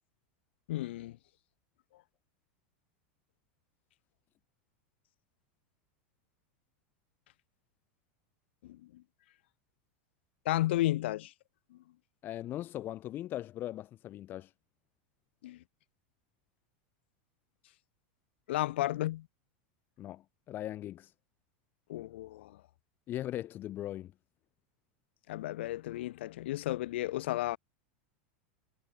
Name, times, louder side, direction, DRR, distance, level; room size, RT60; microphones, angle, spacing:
voice 1, 0.7-1.2 8.6-9.0 10.5-11.3 11.7-11.8 15.4-15.6 18.5-19.3 21.9-22.6 25.3-27.6, left 15 dB, 80° left, 0.5 m, -33 dB
voice 2, 12.2-14.5 20.0-21.1 23.1-24.1, left 13 dB, 35° left, 2.6 m, -39 dB
supercardioid pair, 140°, 6 cm